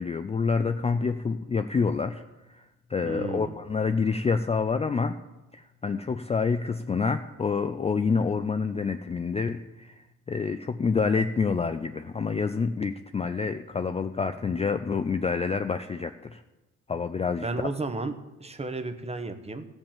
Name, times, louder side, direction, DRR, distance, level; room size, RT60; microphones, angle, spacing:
voice 1, 0.0-2.2 2.5-2.6 2.9-5.2 5.5-16.4 16.9-17.5, left 5 dB, 20° left, 9 dB, 0.4 m, -27 dB
voice 2, 3.0-3.6 17.4-19.7, right 3 dB, 20° right, 9 dB, 0.9 m, -33 dB
14.5 x 5.3 x 7.3 m, 1.1 s
cardioid pair, 90°, 30 cm